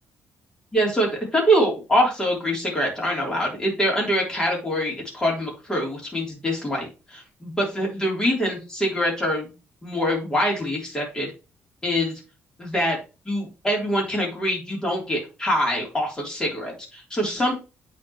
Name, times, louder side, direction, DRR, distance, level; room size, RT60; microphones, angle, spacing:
voice 1, 0.7-9.5 9.8-11.3 11.8-12.2 12.6-13.0 13.2-17.5, equal, 15° left, -2 dB, 3.3 m, -24 dB
8.7 x 4.4 x 3.0 m, 0.29 s
cardioid pair, 140°, 5 cm